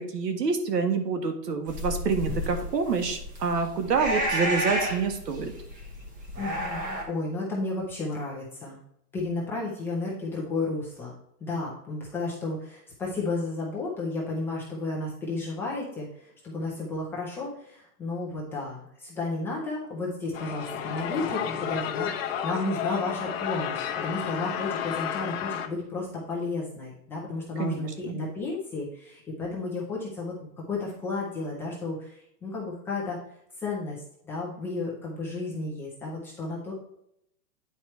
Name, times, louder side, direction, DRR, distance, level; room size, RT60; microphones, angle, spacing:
voice 1, 0.0-5.5 27.6-28.2, right 5 dB, 90° right, 6 dB, 1.8 m, -27 dB
sound 1, 1.7-7.0, equal, 15° right, 1.3 m, -31 dB
voice 2, 6.4-8.8 9.1-11.1 11.4-30.4 30.7-33.2 33.6-36.7, left 3 dB, 5° left, -5 dB, 0.5 m, -33 dB
sound 2, 20.3-25.7, left 9 dB, 40° left, 0.9 m, -32 dB
9.2 x 4.5 x 4.3 m, 0.75 s
hypercardioid pair, 155°, 47 cm